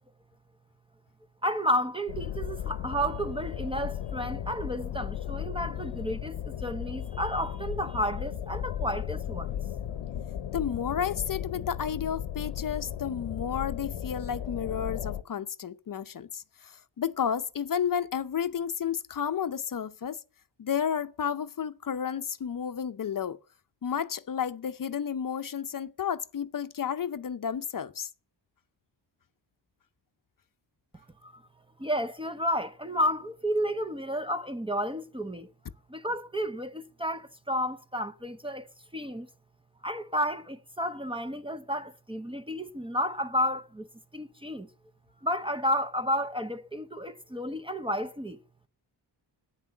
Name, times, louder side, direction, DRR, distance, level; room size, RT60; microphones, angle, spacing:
voice 1, 1.4-9.5 30.9-31.4 31.8-35.5 35.9-38.7 38.9-39.3 39.8-43.9 44.1-44.7 45.2-48.4, equal, 10° right, 0.6 m, -31 dB
sound 1, 2.1-15.2, left 10 dB, 75° left, 0.8 m, -35 dB
voice 2, 10.5-20.2 20.6-23.4 23.8-28.1, left 8 dB, 45° left, 0.6 m, -32 dB
11.0 x 9.1 x 7.6 m
wide cardioid pair, 140°, 46 cm